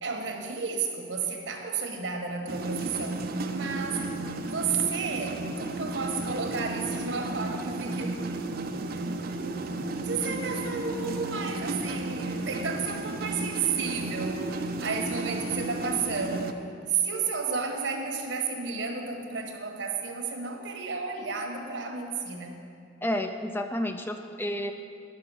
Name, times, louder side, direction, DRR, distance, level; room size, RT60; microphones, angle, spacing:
voice 1, 0.0-4.2 4.5-8.2 9.4-14.4 14.8-16.5 16.9-22.6, right 5 dB, 70° right, 3 dB, 1.1 m, -32 dB
sound 1, 2.5-16.5, right 2 dB, 50° right, 0.5 m, -33 dB
voice 2, 23.0-24.7, left 1 dB, 10° left, 6 dB, 0.4 m, -30 dB
10.5 x 5.9 x 6.2 m, 2.4 s
head